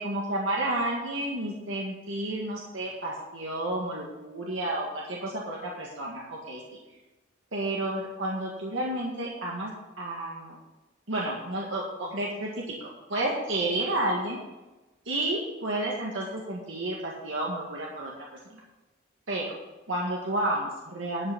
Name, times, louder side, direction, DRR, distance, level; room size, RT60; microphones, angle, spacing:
voice 1, 0.0-6.6 7.5-9.7 10.0-10.6 11.1-14.4 15.1-18.6 19.3-19.5 19.9-21.3, right 1 dB, 75° right, -3 dB, 1.8 m, -31 dB
12.0 x 6.0 x 7.0 m, 1.1 s
head